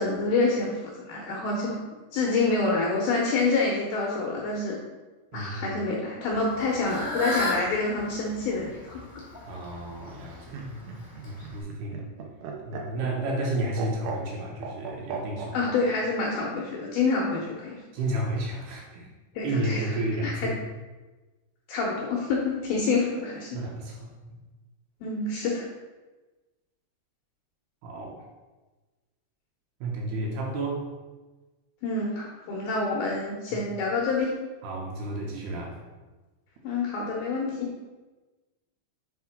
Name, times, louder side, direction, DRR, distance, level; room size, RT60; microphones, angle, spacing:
voice 1, 0.0-1.8 2.1-4.8 5.3-9.0 15.5-17.8 19.4-19.9 20.2-20.5 21.7-23.5 25.0-25.7 31.8-34.3 36.6-37.7, left 3 dB, 75° left, -2 dB, 2.2 m, -27 dB
voice 2, 5.3-5.8 9.5-10.9 11.2-12.0 12.7-15.6 17.9-19.1 19.4-20.6 23.5-24.1 27.8-28.2 29.8-30.8 34.6-35.8, right 1 dB, 70° right, -2 dB, 2.8 m, -32 dB
Fowl / Bird, 6.3-11.6, left 1 dB, 20° left, 0.5 m, -35 dB
Laughter, 10.1-15.8 17.1-17.7, right 5 dB, 90° right, 3.4 m, -38 dB
7.6 x 3.6 x 5.7 m, 1.2 s
omnidirectional pair, 5.2 m